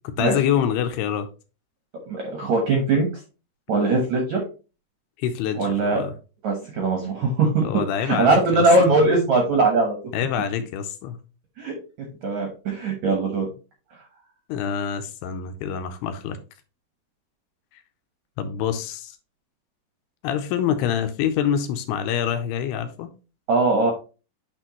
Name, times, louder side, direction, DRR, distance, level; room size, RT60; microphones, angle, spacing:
voice 1, 0.2-1.3 5.2-6.1 7.6-8.9 10.1-11.2 14.5-16.4 18.4-19.2 20.2-23.1, left 9 dB, 80° left, 8 dB, 2.6 m, -26 dB
voice 2, 2.1-3.1 3.7-4.4 5.6-6.1 6.4-10.0 11.6-13.5 23.5-23.9, right 3 dB, 70° right, 1 dB, 1.8 m, -21 dB
8.7 x 4.4 x 3.0 m, 0.33 s
omnidirectional pair, 4.9 m